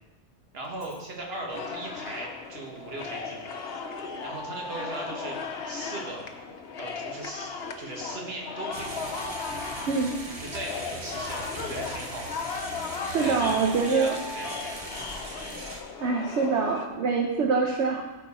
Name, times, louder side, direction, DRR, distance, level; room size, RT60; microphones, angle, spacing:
voice 1, 0.5-3.5 4.2-5.4 5.7-6.2 6.8-7.5 7.8-9.1 10.4-12.4 13.2-14.8, right 2 dB, 60° right, 0 dB, 1.6 m, -38 dB
Alarm, 0.6-1.0 2.7-6.5 7.6-11.4 12.5-15.7, right 1 dB, 45° left, 1.2 m, -45 dB
sound 1, 1.5-16.9, left 5 dB, 65° left, 1.0 m, -37 dB
sound 2, 8.7-15.8, right 2 dB, 35° right, 1.0 m, -40 dB
voice 2, 9.9-10.2 13.0-14.1 16.0-18.0, right 4 dB, 80° right, 1 dB, 1.1 m, -25 dB
13.0 x 4.5 x 4.2 m, 1.1 s
omnidirectional pair, 1.2 m